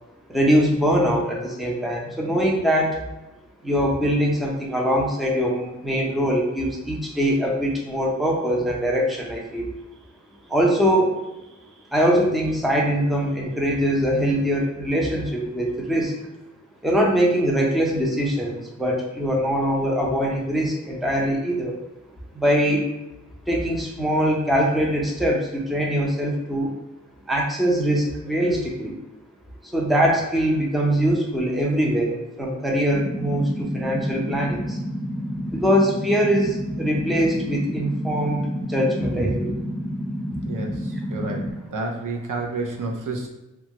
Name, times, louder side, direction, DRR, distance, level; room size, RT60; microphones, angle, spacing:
voice 1, 0.3-3.0 3.6-9.7 10.5-11.2 11.9-16.1 16.8-21.8 22.3-22.9 23.5-26.7 27.3-29.0 29.6-34.8 35.5-38.4 38.7-39.5, equal, ahead, -2 dB, 0.6 m, -22 dB
sound 1, 32.9-41.5, equal, 35° left, 0.7 m, -30 dB
voice 2, 40.5-43.3, right 3 dB, 80° right, 1 dB, 0.6 m, -30 dB
2.9 x 2.3 x 2.8 m, 0.97 s
wide cardioid pair, 85°, 31 cm